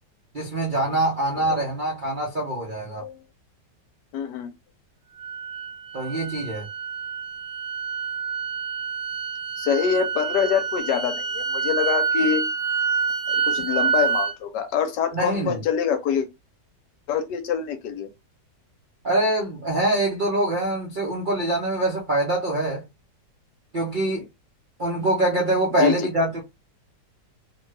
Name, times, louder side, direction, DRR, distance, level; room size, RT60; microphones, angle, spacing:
voice 1, 0.3-3.0 5.9-6.7 15.1-15.6 19.0-22.8 23.7-24.2 24.8-26.4, right 1 dB, 60° right, 0.5 m, -24 dB
voice 2, 4.1-4.5 9.6-12.5 13.3-16.3 17.1-18.1 25.8-26.1, left 8 dB, 80° left, 1.2 m, -25 dB
sound 1, 5.2-14.3, right 6 dB, 75° right, 1.3 m, -27 dB
3.0 x 2.2 x 3.2 m
omnidirectional pair, 1.9 m